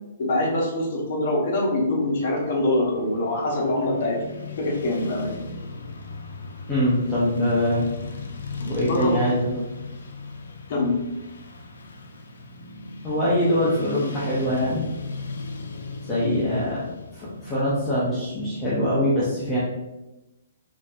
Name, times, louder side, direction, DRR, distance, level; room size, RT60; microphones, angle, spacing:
voice 1, 0.2-4.2 4.6-5.4 8.8-9.3 10.7-11.0 16.2-16.4, left 1 dB, 45° left, -1 dB, 0.8 m, -24 dB
Motorcycle / Traffic noise roadway noise, 2.0-18.6, left 3 dB, 85° left, 0.5 m, -38 dB
voice 2, 6.7-7.8 8.6-9.6 13.0-14.8 16.1-16.8 17.1-19.6, equal, 10° left, -10 dB, 0.6 m, -23 dB
3.6 x 2.7 x 2.4 m, 0.98 s
hypercardioid pair, 170°, 0 cm